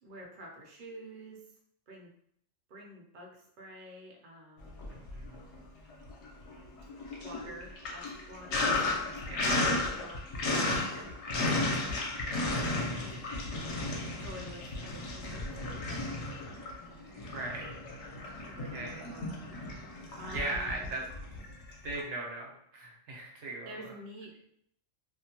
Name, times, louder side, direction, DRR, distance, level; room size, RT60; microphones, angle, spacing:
voice 1, 0.0-1.5 1.9-2.1 2.7-4.9 7.2-11.8 12.4-13.1 14.1-17.2 18.4-19.7 20.1-20.9 23.7-24.5, equal, 55° right, -2 dB, 0.7 m, -49 dB
Sink (filling or washing), 4.7-5.6 5.9-22.0, left 2 dB, 75° left, 0.9 m, -34 dB
voice 2, 4.9-5.5 9.3-9.6 10.5-10.9 12.8-13.3 17.3-17.8 18.7-19.1 20.3-21.0 21.5-21.6 21.8-23.7, right 2 dB, 80° right, -1 dB, 1.0 m, -39 dB
2.5 x 2.1 x 2.8 m, 0.70 s
omnidirectional pair, 1.2 m